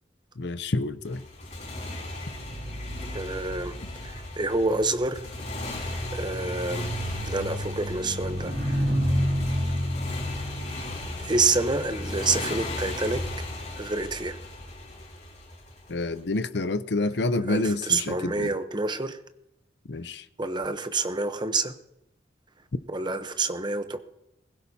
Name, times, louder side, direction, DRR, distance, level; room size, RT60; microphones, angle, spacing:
voice 1, 0.4-1.2 15.9-18.5 19.9-20.2, left 2 dB, 60° left, 0.7 m, -28 dB
Motorcycle, 1.0-16.2, left 2 dB, 40° left, 4.9 m, -37 dB
sound 1, 2.2-13.8 14.6-14.9, equal, 50° right, 2.7 m, -32 dB
voice 2, 3.1-3.7 4.0-5.2 6.1-6.9 7.3-8.5 11.2-13.2 13.8-14.4 17.5-19.2 20.4-21.7 22.9-24.0, right 3 dB, 25° right, 0.8 m, -27 dB
22.0 x 16.0 x 2.8 m
head